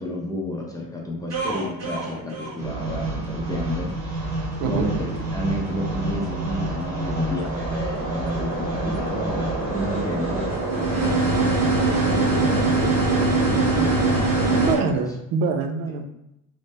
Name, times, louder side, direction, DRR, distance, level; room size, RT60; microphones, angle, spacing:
voice 1, 0.0-4.2 4.6-15.0, left 1 dB, 10° left, -2 dB, 0.6 m, -31 dB
sound 1, 1.3-14.8, right 3 dB, 50° right, 1.2 m, -24 dB
voice 2, 4.6-4.9 14.6-16.1, right 5 dB, 75° right, 7 dB, 0.5 m, -25 dB
3.1 x 2.6 x 3.5 m, 0.85 s
cardioid pair, 140°, 34 cm